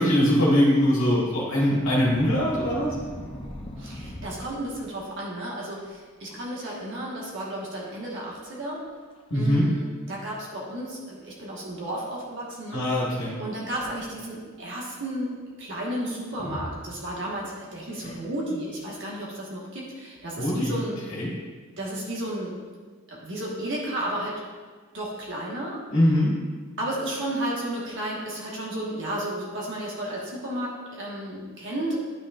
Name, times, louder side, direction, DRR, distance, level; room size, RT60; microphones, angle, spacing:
voice 1, 0.0-2.9 9.3-9.7 12.7-13.3 20.4-20.7 21.1-21.3 25.9-26.3, equal, 60° left, -6 dB, 1.6 m, -22 dB
sound 1, 1.8-5.1 5.7-6.0 6.3-6.7 7.0-7.1 7.9-8.0 8.5-8.6 9.1-9.5 10.4-10.5 13.3-14.3 16.3-17.4 17.9-18.6, left 1 dB, 25° left, 0.7 m, -39 dB
voice 2, 3.8-8.9 9.3-12.8 13.4-21.0 21.8-22.5 23.1-24.4 24.9-25.8 26.8-32.0, right 1 dB, 55° right, -4 dB, 1.4 m, -33 dB
10.0 x 6.2 x 2.5 m, 1.5 s
head